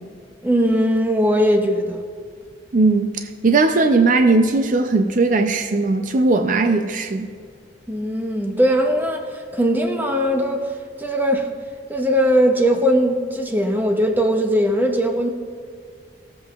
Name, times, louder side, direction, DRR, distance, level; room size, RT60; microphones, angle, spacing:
voice 1, 0.4-2.0 7.9-11.5 11.9-15.3, equal, 10° right, 4 dB, 0.6 m, -19 dB
voice 2, 2.7-7.3, right 3 dB, 45° right, 6 dB, 0.5 m, -18 dB
16.0 x 7.5 x 2.4 m, 2.1 s
head